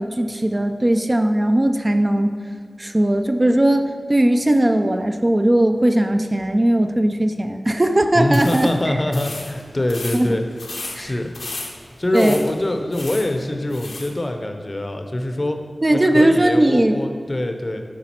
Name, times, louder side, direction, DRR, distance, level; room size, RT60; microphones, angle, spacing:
voice 1, 0.0-2.3 2.8-8.7 10.1-10.4 10.9-11.1 12.1-12.4 15.8-16.9, right 1 dB, 30° right, 6 dB, 0.4 m, -18 dB
voice 2, 8.1-10.4 10.9-11.3 12.0-15.6 15.9-17.8, left 1 dB, 40° left, 5 dB, 0.6 m, -23 dB
sound 1, 8.2-14.2, left 2 dB, 80° left, 0.8 m, -35 dB
7.2 x 4.9 x 4.4 m, 2.2 s
wide cardioid pair, 55°, 0 cm